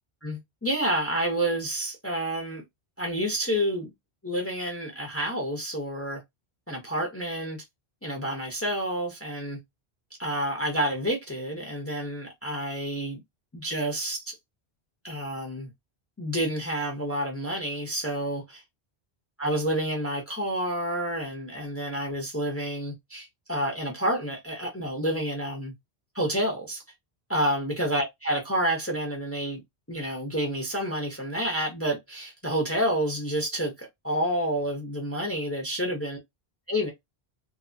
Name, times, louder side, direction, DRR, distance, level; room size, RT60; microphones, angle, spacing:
voice 1, 0.2-2.6 3.0-3.9 4.2-6.2 6.7-7.6 8.0-9.6 10.2-13.2 13.5-14.4 15.0-15.7 16.2-18.6 19.4-25.7 26.1-26.8 27.3-29.6 29.9-36.2 36.7-36.9, right 1 dB, 15° left, 0.6 m, -29 dB
2.8 x 2.2 x 2.5 m
omnidirectional pair, 1.1 m